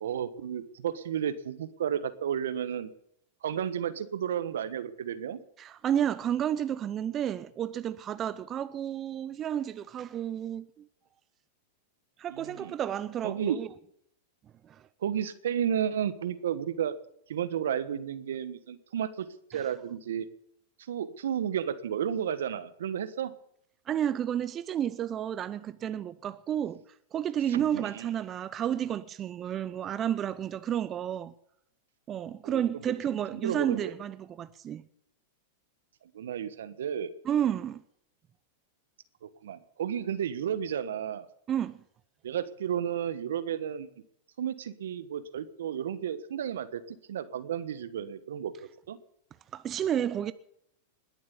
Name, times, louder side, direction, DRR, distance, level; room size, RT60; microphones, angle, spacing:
voice 1, 0.0-2.9 3.4-5.4 12.3-12.7 13.2-13.6 15.0-16.9 17.3-20.3 20.9-23.3 27.5-28.1 32.4-32.8 33.3-33.8 36.1-37.1 39.2-41.3 42.2-43.9 44.4-48.5 48.9-49.0, right 9 dB, 80° right, 1.3 m, -32 dB
voice 2, 5.6-10.9 12.2-13.7 14.6-14.9 19.5-19.7 23.9-26.8 27.1-31.3 32.1-34.8 37.2-37.8 41.5-41.8 49.5-50.3, right 10 dB, 30° right, 0.7 m, -31 dB
20.5 x 7.5 x 8.4 m
hypercardioid pair, 115°, 0 cm